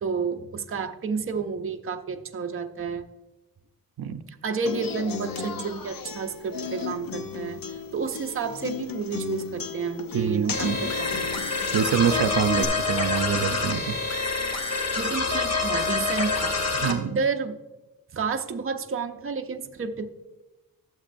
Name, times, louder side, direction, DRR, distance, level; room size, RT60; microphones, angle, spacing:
voice 1, 0.0-3.0 4.4-7.6 7.9-11.3 15.0-17.6 18.1-20.1, right 5 dB, 35° right, 6 dB, 0.6 m, -30 dB
Human voice / Acoustic guitar, 4.7-12.6, left 5 dB, 70° left, 0.8 m, -35 dB
voice 2, 10.1-10.8 11.7-14.0 16.7-17.2, right 8 dB, 85° right, 9 dB, 0.6 m, -25 dB
sound 1, 10.5-16.9, left 4 dB, 45° left, 1.0 m, -27 dB
12.0 x 7.4 x 2.6 m, 1.1 s
wide cardioid pair, 140°, 36 cm